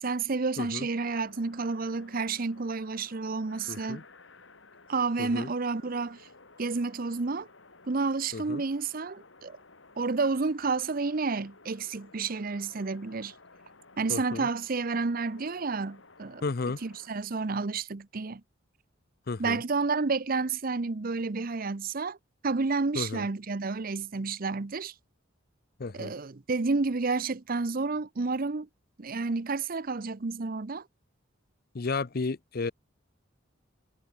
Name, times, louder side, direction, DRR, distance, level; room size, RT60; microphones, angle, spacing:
voice 1, 0.0-4.0 4.9-6.2 6.6-7.5 7.9-9.6 10.0-13.3 14.0-16.4 16.8-18.4 19.4-22.2 22.4-24.9 25.9-28.7 29.0-30.8, right 4 dB, 45° right, 0.7 m, -30 dB
sound 1, 1.1-17.1, left 3 dB, 80° left, 4.3 m, -55 dB
voice 2, 3.7-4.0 5.2-5.5 8.3-8.6 14.1-14.5 16.4-16.8 19.3-19.6 22.9-23.3 25.8-26.1 31.7-32.7, left 3 dB, 50° left, 0.6 m, -33 dB
head